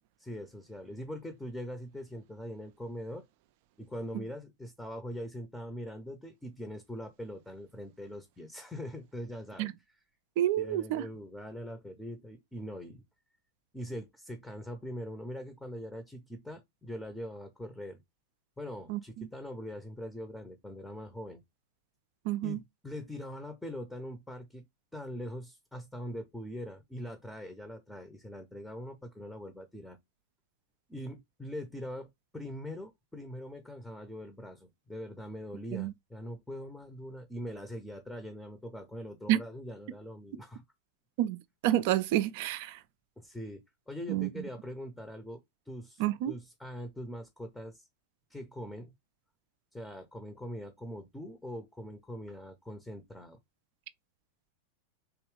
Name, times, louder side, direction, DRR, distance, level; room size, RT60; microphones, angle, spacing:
voice 1, 0.2-3.3 3.8-10.0 10.6-13.0 13.7-18.0 18.6-21.4 22.4-24.6 24.9-30.0 30.9-40.6 43.2-43.6 43.9-47.9 48.3-48.9 49.7-53.4, equal, 5° left, 0.7 m, -42 dB
voice 2, 10.4-11.1 18.9-19.3 22.3-22.6 35.7-35.9 39.3-39.4 41.2-41.4 41.6-42.8 44.1-44.3 46.0-46.3, right 13 dB, 50° right, 0.4 m, -29 dB
3.5 x 3.0 x 3.2 m
figure-of-eight pair, 90°, 0 cm